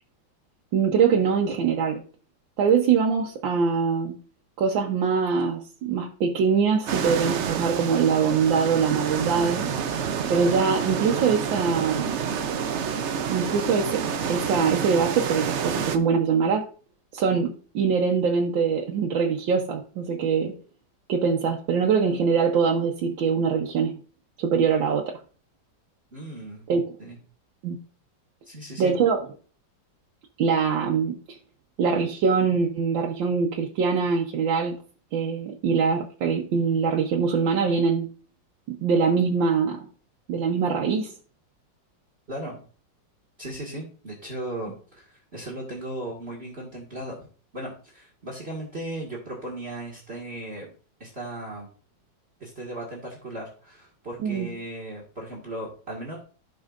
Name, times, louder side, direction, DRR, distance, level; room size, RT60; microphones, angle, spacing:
voice 1, 0.7-2.0 2.6-4.2 4.6-9.7 10.3-12.2 13.3-16.6 17.1-20.6 21.1-23.9 24.4-25.2 26.7-26.9 27.6-27.7 28.8-29.2 30.4-31.4 31.8-34.8 35.1-38.1 38.7-39.8 40.3-41.1 54.2-54.5, right 6 dB, 85° right, 0 dB, 1.7 m, -23 dB
sound 1, 6.9-16.0, right 7 dB, 65° right, 0.7 m, -28 dB
voice 2, 26.1-26.7 27.0-27.2 28.5-29.0 42.3-42.5 43.4-47.3 47.5-50.7 51.0-51.7 52.4-56.2, right 1 dB, 35° right, -2 dB, 2.1 m, -36 dB
15.5 x 5.5 x 2.5 m, 0.40 s
omnidirectional pair, 2.0 m